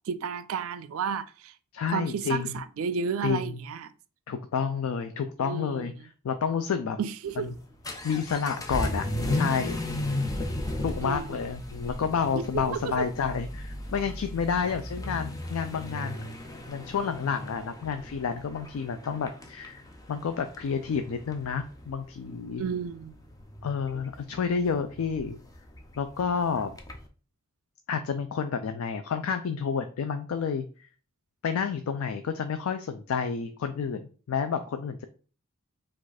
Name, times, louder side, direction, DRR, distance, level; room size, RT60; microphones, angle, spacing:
voice 1, 0.1-1.5 1.9-3.9 5.4-5.9 7.0-7.5 11.0-11.4 12.3-13.1 22.6-23.1, right 6 dB, 70° right, 0.4 m, -32 dB
voice 2, 1.7-2.6 3.2-3.6 4.3-7.0 7.4-7.5 8.0-9.1 9.3-9.8 10.8-16.3 16.7-19.8 20.1-22.6 23.6-25.4 26.0-26.7 27.9-30.6 31.4-35.0, left 6 dB, 75° left, 0.4 m, -30 dB
Vehicle / Accelerating revving vroom, 7.3-27.1, left 1 dB, 15° left, 0.5 m, -36 dB
4.8 x 2.4 x 4.0 m
head